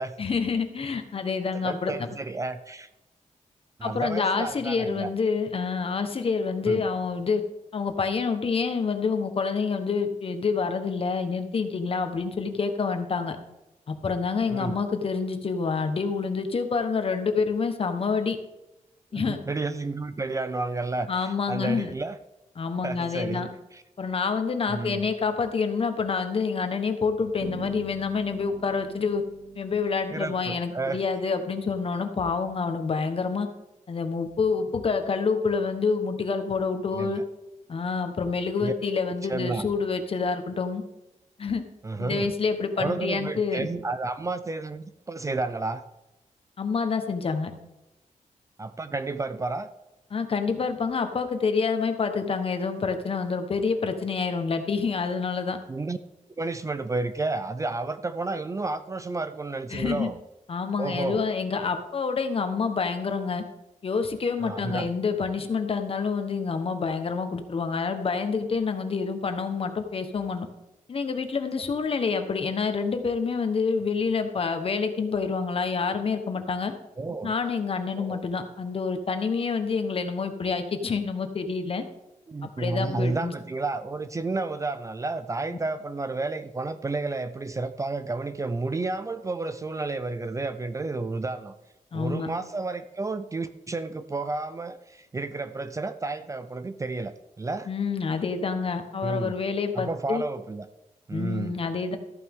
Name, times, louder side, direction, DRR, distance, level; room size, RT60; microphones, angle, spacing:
voice 1, 0.2-2.1 3.8-7.4 7.7-13.4 13.9-18.4 19.1-19.4 21.1-21.9 22.6-23.5 24.0-29.2 29.5-33.5 33.9-37.2 37.7-40.8 41.4-41.6 42.0-43.7 46.6-47.5 50.1-55.6 59.7-60.1 60.5-63.4 63.8-70.5 70.9-76.7 77.2-81.8 82.4-83.3 91.9-92.3 97.7-100.2 101.1-102.0, left 5 dB, 45° left, 7 dB, 1.2 m, -27 dB
voice 2, 1.6-2.9 3.8-5.1 6.7-6.9 14.5-14.8 19.1-22.2 22.8-23.5 24.7-25.0 30.1-31.0 36.9-37.2 38.6-38.7 39.3-39.7 41.8-42.3 42.8-45.8 48.6-49.7 55.7-56.0 56.4-60.2 60.8-61.2 64.4-64.9 77.0-77.3 78.0-78.2 82.3-91.5 91.9-97.7 99.0-99.4 99.7-100.7 101.1-101.6, right 3 dB, 25° right, 11 dB, 0.5 m, -31 dB
Bass guitar, 27.4-31.2, right 3 dB, 75° right, 2.1 m, -43 dB
14.0 x 9.2 x 3.7 m, 0.96 s
wide cardioid pair, 135°, 13 cm